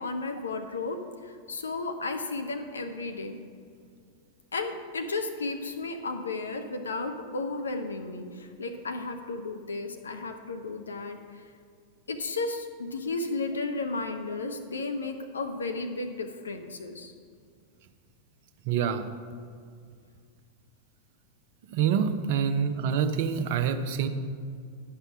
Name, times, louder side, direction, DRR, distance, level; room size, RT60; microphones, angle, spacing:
voice 1, 0.0-3.4 4.5-11.4 12.1-17.1, left 3 dB, 70° left, 6 dB, 0.6 m, -34 dB
voice 2, 18.7-19.1 21.7-24.1, right 7 dB, 50° right, 9 dB, 0.6 m, -26 dB
10.5 x 5.5 x 5.9 m, 2.2 s
figure-of-eight pair, 90°, 0 cm